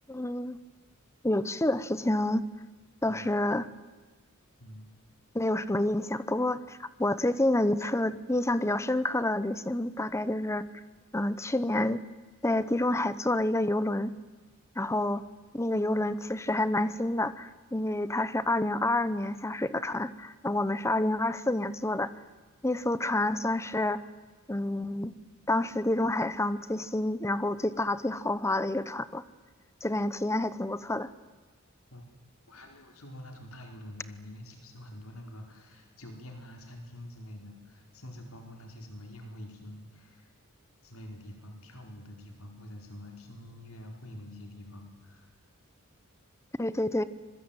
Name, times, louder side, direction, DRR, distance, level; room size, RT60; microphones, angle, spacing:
voice 1, 0.1-0.6 1.2-2.5 3.0-3.7 5.3-10.7 11.1-12.0 12.4-14.1 14.8-15.2 15.5-22.1 22.6-24.0 24.5-25.1 25.5-29.2 29.8-31.1 46.6-47.0, left 1 dB, 15° left, 14 dB, 0.9 m, -28 dB
voice 2, 4.6-4.9 31.9-32.0 32.5-40.3 40.8-45.3, left 1 dB, 80° left, 3 dB, 4.5 m, -46 dB
25.5 x 22.0 x 9.1 m, 1.3 s
head